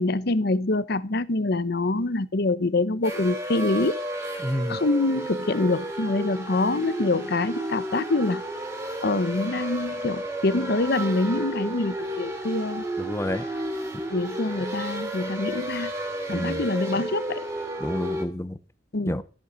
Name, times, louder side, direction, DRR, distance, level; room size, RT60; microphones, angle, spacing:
voice 1, 0.0-3.9 4.7-8.4 9.0-12.8 14.1-15.9 16.3-17.4 18.9-19.2, left 2 dB, 60° left, 0.9 m, -25 dB
sound 1, 3.0-18.2, right 1 dB, 15° right, 3.2 m, -32 dB
voice 2, 4.4-4.8 13.0-13.4 16.3-16.6 17.8-18.6 19.1-19.2, left 1 dB, 15° left, 0.9 m, -29 dB
14.0 x 9.0 x 6.9 m
head